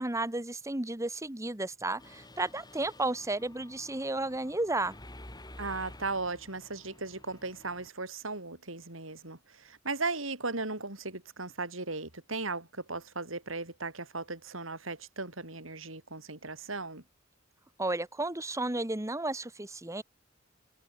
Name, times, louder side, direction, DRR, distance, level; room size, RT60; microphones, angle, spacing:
voice 1, 0.0-5.0 17.8-20.0, right 2 dB, 15° right, 1.4 m, -33 dB
Mechanisms, 2.0-7.9, left 1 dB, 20° left, 7.9 m, -51 dB
voice 2, 5.6-17.0, right 3 dB, 90° right, 7.0 m, -37 dB
head